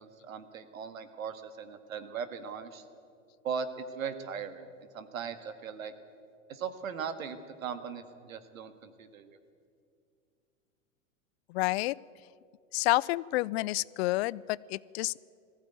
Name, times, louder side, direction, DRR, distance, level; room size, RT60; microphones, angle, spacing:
voice 1, 0.0-2.8 3.4-3.7 3.9-4.7 4.9-5.9 6.5-9.4, right 7 dB, 85° right, 10 dB, 1.9 m, -39 dB
voice 2, 11.5-12.0 12.7-15.2, left 20 dB, 55° left, 22 dB, 0.5 m, -29 dB
19.5 x 15.0 x 9.3 m, 2.4 s
hypercardioid pair, 115°, 40 cm